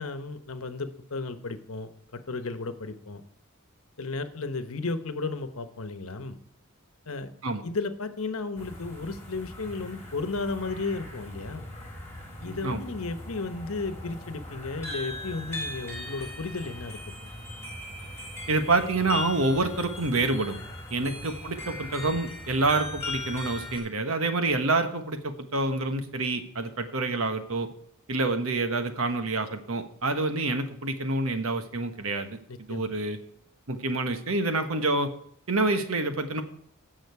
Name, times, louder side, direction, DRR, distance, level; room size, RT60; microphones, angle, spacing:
voice 1, 0.0-3.2 4.0-6.4 7.1-7.3 7.6-11.6 12.4-17.0 21.0-21.2 32.5-32.9, left 3 dB, 80° left, 10 dB, 1.0 m, -34 dB
sound 1, 8.6-23.8, left 1 dB, 10° left, 3.4 m, -39 dB
voice 2, 18.5-20.6 20.9-27.7 28.1-32.4 32.7-33.2 33.7-35.1 35.5-36.4, right 2 dB, 80° right, 8 dB, 1.3 m, -27 dB
16.5 x 6.4 x 4.8 m, 0.67 s
head